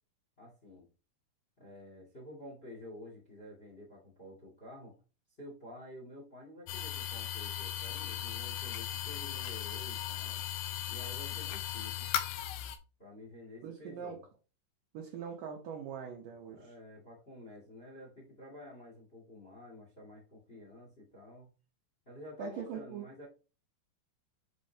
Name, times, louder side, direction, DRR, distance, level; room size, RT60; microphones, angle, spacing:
voice 1, 0.4-0.9 1.6-5.0 5.4-10.4 10.9-12.1 13.0-14.2 15.8-15.9 16.5-21.5 22.0-23.3, left 1 dB, 25° left, 0 dB, 1.2 m, -50 dB
sound 1, 6.7-12.8, left 12 dB, 85° left, 3.0 m, -37 dB
voice 2, 13.6-14.2 14.9-16.7 22.4-23.1, right 6 dB, 75° right, 1 dB, 2.0 m, -42 dB
9.7 x 4.5 x 2.8 m, 0.33 s
omnidirectional pair, 5.1 m